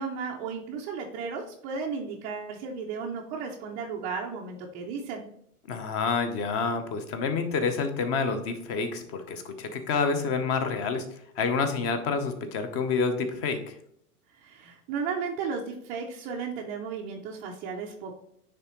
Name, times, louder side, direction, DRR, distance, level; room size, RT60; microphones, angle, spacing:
voice 1, 0.0-5.3 14.4-18.2, right 5 dB, 20° right, -4 dB, 0.4 m, -34 dB
voice 2, 5.7-13.7, left 5 dB, 30° left, 8 dB, 0.9 m, -28 dB
9.7 x 3.5 x 3.0 m, 0.70 s
hypercardioid pair, 120°, 47 cm